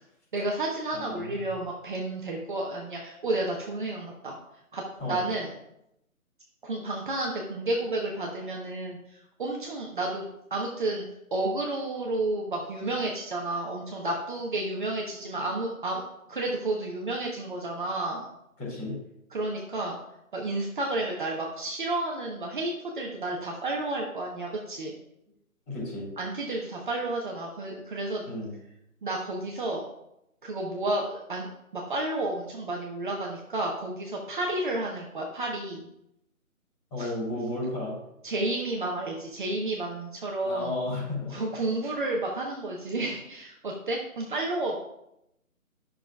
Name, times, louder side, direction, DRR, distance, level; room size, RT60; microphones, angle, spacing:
voice 1, 0.3-4.4 4.7-5.5 6.6-9.0 9.4-10.2 10.5-11.0 11.3-16.0 16.3-18.2 19.3-20.0 20.3-24.9 26.2-28.3 29.0-29.8 30.4-35.9 37.0-37.1 38.2-40.8 41.3-44.7, right 2 dB, 35° right, -1 dB, 1.0 m, -31 dB
voice 2, 0.9-1.5 5.0-5.2 18.6-19.0 25.7-26.1 28.2-28.5 36.9-37.9 40.4-41.4, left 2 dB, 15° left, -7 dB, 3.1 m, -33 dB
11.0 x 6.4 x 2.3 m, 0.82 s
figure-of-eight pair, 155°, 43 cm